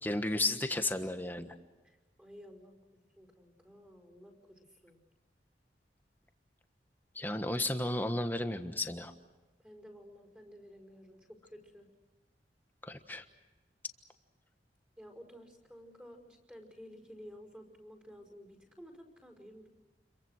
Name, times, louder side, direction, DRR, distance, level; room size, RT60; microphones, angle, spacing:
voice 1, 0.0-1.5 7.1-9.1 12.8-13.2, left 2 dB, 10° left, 7 dB, 1.4 m, -33 dB
voice 2, 1.8-2.9 3.1-5.0 9.6-11.9 15.0-19.7, equal, 10° right, 2 dB, 5.1 m, -53 dB
29.5 x 23.5 x 6.5 m, 1.2 s
head